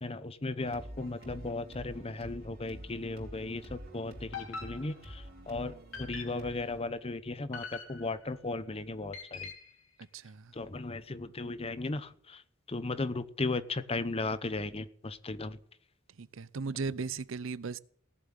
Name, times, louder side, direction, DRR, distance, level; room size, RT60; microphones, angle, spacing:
voice 1, 0.0-9.5 10.5-15.6, left 2 dB, 30° left, 0.8 m, -36 dB
sound 1, 0.6-6.8, equal, 55° right, 4.1 m, -48 dB
sound 2, 4.3-5.3 5.9-6.6 7.5-8.4 9.1-9.8, left 5 dB, 85° left, 3.1 m, -44 dB
voice 2, 10.0-10.5 16.2-17.8, right 4 dB, 75° right, 0.6 m, -37 dB
18.0 x 7.5 x 9.0 m
head